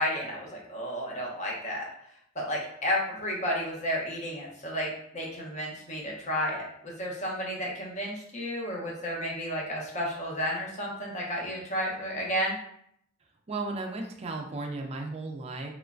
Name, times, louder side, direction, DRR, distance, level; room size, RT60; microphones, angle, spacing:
voice 1, 0.0-1.9 2.3-12.5, equal, 35° left, -2 dB, 0.6 m, -32 dB
voice 2, 13.5-15.7, right 3 dB, 30° right, 2 dB, 0.3 m, -35 dB
3.0 x 2.1 x 2.4 m, 0.70 s
head